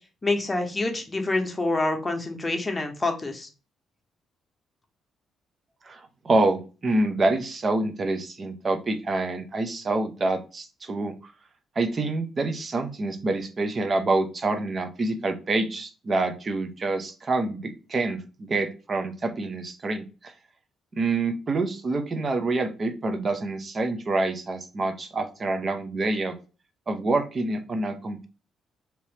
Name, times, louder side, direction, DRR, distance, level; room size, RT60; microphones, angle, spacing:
voice 1, 0.2-3.5, left 2 dB, 20° left, 4 dB, 0.9 m, -27 dB
voice 2, 5.8-11.1 11.8-20.3 20.9-26.3 26.9-28.3, right 2 dB, 35° right, 7 dB, 0.7 m, -27 dB
2.9 x 2.8 x 3.3 m, 0.33 s
cardioid pair, 90°, 0 cm